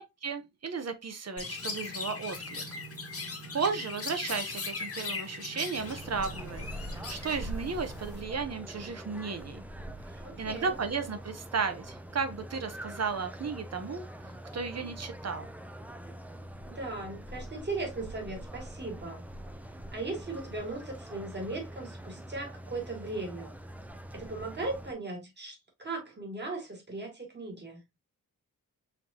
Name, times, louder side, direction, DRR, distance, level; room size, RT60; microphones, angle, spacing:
voice 1, 0.0-2.7 3.5-9.6 10.4-15.5, right 5 dB, 45° right, 0.8 m, -34 dB
Chirp tweet, 1.4-8.2, left 3 dB, 40° left, 1.1 m, -39 dB
sound 1, 5.8-24.9, right 1 dB, 5° right, 0.4 m, -44 dB
voice 2, 10.2-10.8 16.6-19.2 19.9-23.6 24.1-27.8, right 2 dB, 30° right, 1.8 m, -38 dB
4.5 x 3.8 x 2.7 m
wide cardioid pair, 180°, 35 cm